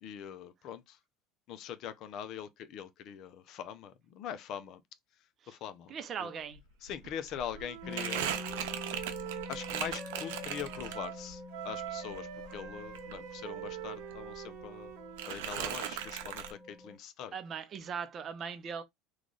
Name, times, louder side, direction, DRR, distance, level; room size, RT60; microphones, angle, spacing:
voice 1, 0.0-1.0 1.5-4.8 5.5-5.9 6.2-6.3 6.8-8.3 9.5-14.9 15.2-17.3, left 9 dB, 50° left, 0.5 m, -42 dB
voice 2, 5.9-6.6 17.3-18.8, right 6 dB, 35° right, 0.6 m, -39 dB
Crumpling crinkling, 6.5-6.6 6.9-11.3 11.7-13.8 14.1-14.9 15.2-16.5, right 10 dB, 85° right, 0.7 m, -39 dB
Wind instrument woodwind instrument, 7.5-11.2 11.5-15.5, right 10 dB, 65° right, 1.0 m, -44 dB
sound 1, 7.8-17.0, left 2 dB, 5° left, 1.1 m, -47 dB
3.1 x 2.4 x 3.9 m
supercardioid pair, 125°, 0 cm